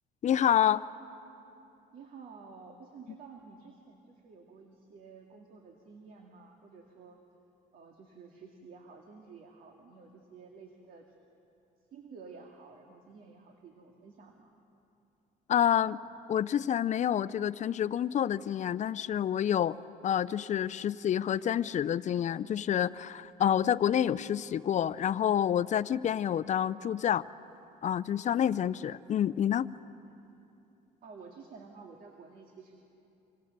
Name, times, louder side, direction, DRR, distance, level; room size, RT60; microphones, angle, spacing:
voice 1, 0.2-0.8 15.5-16.0 16.3-19.8 20.0-27.2 27.8-29.7, left 9 dB, 45° left, 17 dB, 0.6 m, -28 dB
voice 2, 1.9-7.2 7.7-11.2 11.9-14.5 28.7-28.8 30.0-30.3 31.0-32.8, right 5 dB, 55° right, 2 dB, 2.2 m, -51 dB
26.5 x 26.0 x 6.7 m, 2.8 s
cardioid pair, 110°, 17 cm